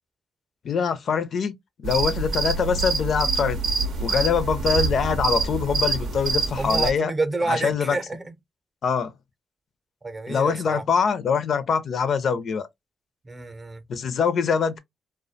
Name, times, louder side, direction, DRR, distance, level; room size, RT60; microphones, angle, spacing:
voice 1, 0.6-1.5 1.8-3.6 4.0-7.1 7.5-8.0 8.8-9.1 10.3-12.7 13.9-14.8, left 6 dB, 65° left, 0.4 m, -24 dB
sound 1, 1.8-6.9, right 4 dB, 80° right, 0.6 m, -26 dB
voice 2, 6.6-8.3 10.0-10.8 13.2-13.8, right 3 dB, 30° right, 0.6 m, -29 dB
2.3 x 2.1 x 2.6 m
cardioid pair, 70°, 0 cm